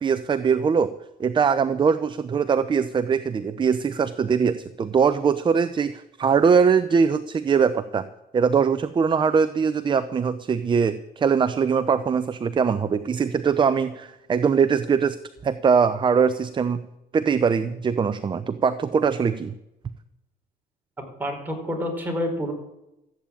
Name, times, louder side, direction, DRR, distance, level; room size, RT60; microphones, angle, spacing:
voice 1, 0.0-0.9 1.2-8.0 8.3-15.2 15.4-16.8 17.1-19.5, right 6 dB, 30° right, 13 dB, 0.6 m, -22 dB
voice 2, 21.2-22.5, equal, 10° right, 2 dB, 4.4 m, -28 dB
14.5 x 8.6 x 8.9 m, 0.90 s
cardioid pair, 110°, 17 cm